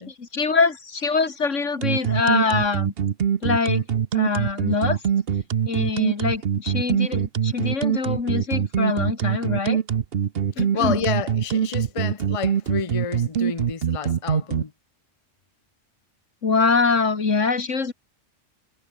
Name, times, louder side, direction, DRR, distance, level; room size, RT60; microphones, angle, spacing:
voice 1, 0.0-2.9 3.4-3.8 4.1-5.0 5.7-9.8 10.6-11.0 16.4-17.9, left 4 dB, 75° left, 2.6 m, -24 dB
sound 1, 1.8-14.6, right 8 dB, 55° right, 1.0 m, -23 dB
voice 2, 10.6-14.7, left 6 dB, 30° left, 1.0 m, -30 dB
omnidirectional pair, 1.3 m